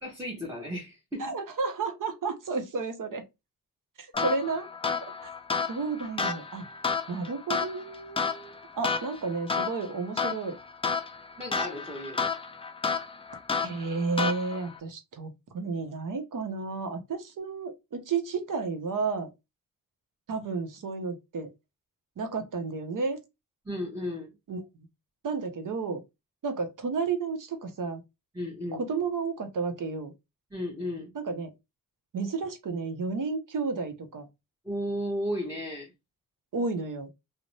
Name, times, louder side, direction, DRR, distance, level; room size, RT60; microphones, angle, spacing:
voice 1, 0.0-1.4 11.4-12.3 23.6-24.3 28.3-28.8 30.5-31.1 34.6-35.9, equal, 10° right, 0.8 m, -34 dB
voice 2, 1.2-3.2 4.0-4.7 5.2-5.3 5.7-6.7 7.1-10.6 13.6-19.3 20.3-21.5 22.2-23.2 24.5-24.6 25.2-26.0 26.4-28.0 28.7-30.1 31.1-31.5 32.1-34.3 36.5-37.1, right 4 dB, 65° right, 0.7 m, -32 dB
sound 1, 4.1-14.8, left 5 dB, 15° left, 0.4 m, -32 dB
2.5 x 2.1 x 3.0 m
cardioid pair, 60°, 35 cm